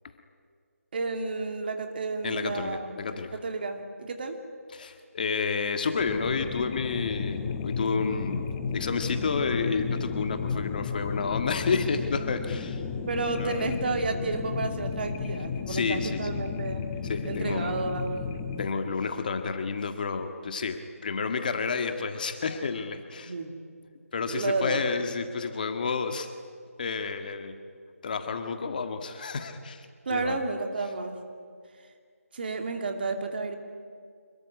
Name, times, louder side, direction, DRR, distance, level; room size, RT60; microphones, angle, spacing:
voice 1, 0.9-2.9 3.4-4.4 13.1-16.8 17.2-18.2 23.2-23.5 24.3-24.8 30.1-31.2 32.3-33.6, right 3 dB, 40° right, 5 dB, 2.8 m, -31 dB
voice 2, 2.2-3.4 4.7-12.8 13.4-13.6 15.7-16.3 17.0-17.8 18.6-23.3 24.1-26.3 26.8-27.6 28.0-30.4, left 5 dB, 35° left, 7 dB, 1.7 m, -30 dB
sound 1, 6.0-18.7, left 5 dB, 15° left, 1.1 m, -33 dB
26.5 x 22.5 x 9.8 m, 2.2 s
figure-of-eight pair, 165°, 8 cm